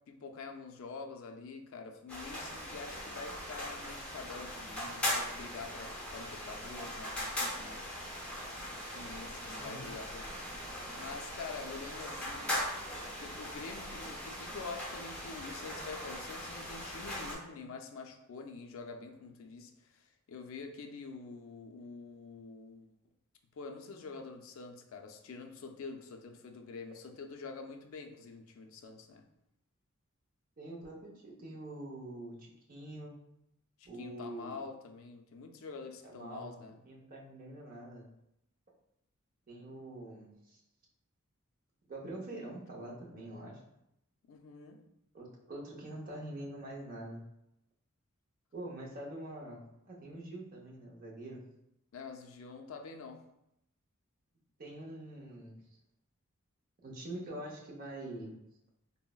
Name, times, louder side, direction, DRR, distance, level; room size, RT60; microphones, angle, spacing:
voice 1, 0.1-7.8 8.9-10.5 11.0-12.6 13.2-22.9 23.6-29.2 33.8-36.8 44.3-44.8 51.9-53.2, left 4 dB, 65° left, 4 dB, 0.4 m, -46 dB
sound 1, 2.1-17.3, left 1 dB, 5° left, 0.6 m, -40 dB
voice 2, 9.6-9.9 30.6-33.1 33.8-34.6 36.0-36.5 36.8-38.1 39.5-40.6 41.9-43.6 45.1-47.2 48.5-51.4 54.6-55.6 56.8-58.4, right 1 dB, 40° right, -2 dB, 0.6 m, -45 dB
3.7 x 2.0 x 2.2 m, 0.82 s
head